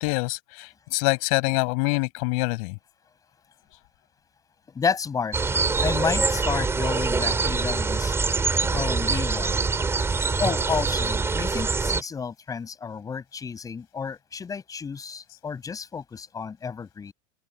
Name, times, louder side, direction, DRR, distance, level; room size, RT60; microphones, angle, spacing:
voice 1, 0.0-2.8, left 33 dB, 60° left, 6.8 m, -25 dB
voice 2, 4.7-5.4 5.8-8.1 8.7-9.7 10.4-17.1, left 6 dB, 20° left, 6.2 m, -31 dB
sound 1, 5.3-12.0, right 4 dB, 10° right, 4.7 m, -24 dB
supercardioid pair, 140°, 20 cm